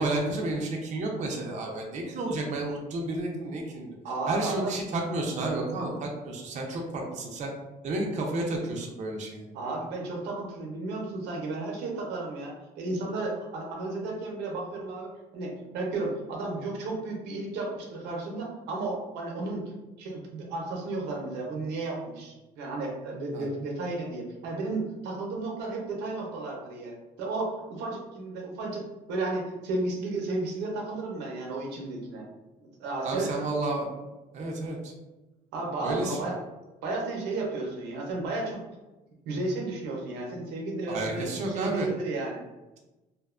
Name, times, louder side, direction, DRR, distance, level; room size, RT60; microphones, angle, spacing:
voice 1, 0.0-3.9 4.3-7.5 7.8-9.5 23.3-23.5 33.0-33.9 34.3-34.9 35.8-36.2 40.9-41.9, right 2 dB, 45° right, 0 dB, 0.5 m, -31 dB
voice 2, 4.0-4.7 9.5-19.7 20.0-28.8 29.1-32.2 32.6-33.4 35.5-36.4 36.8-38.6 39.3-42.4, right 2 dB, 90° right, -1 dB, 0.6 m, -33 dB
2.5 x 2.1 x 2.4 m, 1.1 s
cardioid pair, 110°, 17 cm